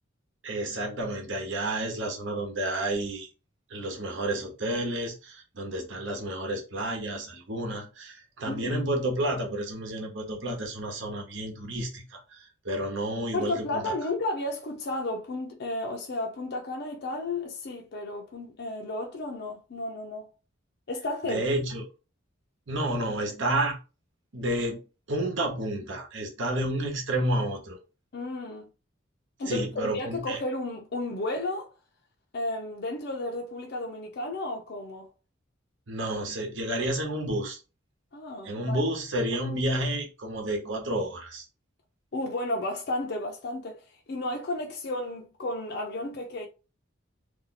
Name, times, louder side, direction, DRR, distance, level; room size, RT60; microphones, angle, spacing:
voice 1, 0.4-3.3 3.7-13.9 21.3-21.9 22.7-23.8 24.3-24.8 25.1-27.8 29.5-30.4 35.9-37.6 38.4-41.4, right 1 dB, 65° right, 1.0 m, -30 dB
voice 2, 8.5-8.9 13.3-20.3 20.9-21.4 28.1-28.7 29.4-31.7 32.3-35.1 38.1-38.8 42.1-43.8 44.1-46.5, left 2 dB, 55° left, 0.5 m, -33 dB
2.7 x 2.3 x 4.0 m
head